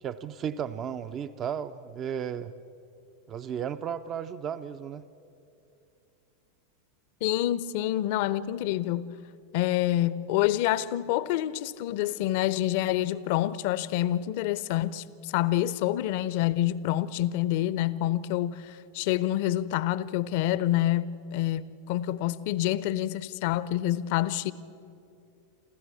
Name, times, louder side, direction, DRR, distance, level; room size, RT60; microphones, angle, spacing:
voice 1, 0.0-2.5 3.3-5.0, right 8 dB, 30° right, 0.6 m, -34 dB
voice 2, 7.2-9.1 9.5-24.5, left 13 dB, 50° left, 0.7 m, -27 dB
27.5 x 14.0 x 8.4 m
figure-of-eight pair, 90°, 0 cm